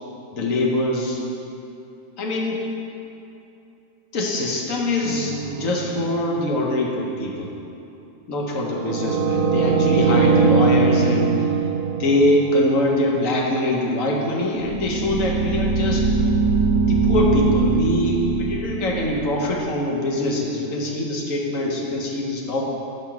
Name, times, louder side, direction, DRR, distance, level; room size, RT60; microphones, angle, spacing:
voice 1, 0.3-1.2 2.2-2.6 4.1-7.5 8.3-11.4 11.9-16.1 16.9-22.7, left 1 dB, 85° left, -1 dB, 1.3 m, -23 dB
sound 1, 5.0-6.5 8.7-13.2 14.6-19.6, right 4 dB, 80° right, 1.0 m, -21 dB
5.6 x 5.1 x 5.9 m, 2.8 s
omnidirectional pair, 1.3 m